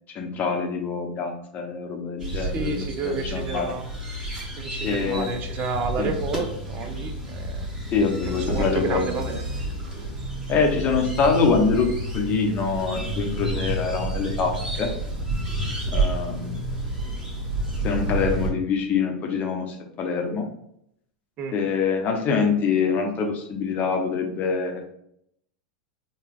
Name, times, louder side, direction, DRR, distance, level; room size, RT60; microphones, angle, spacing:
voice 1, 0.1-3.7 4.8-5.3 6.0-6.1 7.9-9.0 10.5-14.9 15.9-16.5 17.8-20.5 21.5-24.8, left 5 dB, 35° left, 3 dB, 0.8 m, -25 dB
sound 1, 2.2-18.5, right 1 dB, 15° right, 1.3 m, -30 dB
voice 2, 2.3-3.9 4.6-7.7 8.2-9.4 21.4-21.6, right 4 dB, 40° right, 5 dB, 0.5 m, -31 dB
3.8 x 2.3 x 3.3 m, 0.73 s
hypercardioid pair, 100°, 5 cm